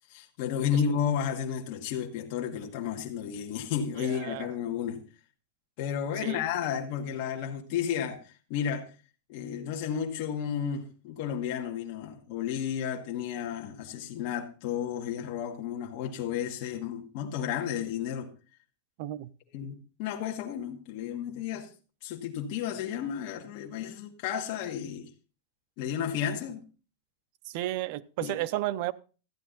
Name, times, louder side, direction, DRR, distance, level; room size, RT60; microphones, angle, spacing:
voice 1, 0.1-5.0 5.8-8.2 8.5-8.9 9.3-18.3 19.5-21.7 22.0-25.1 25.8-26.6 28.2-28.4, left 8 dB, 45° left, 1.5 m, -32 dB
voice 2, 4.0-4.5 6.2-6.4 19.0-19.3 27.5-28.9, right 15 dB, 50° right, 0.5 m, -33 dB
13.0 x 9.4 x 3.9 m
supercardioid pair, 160°, 0 cm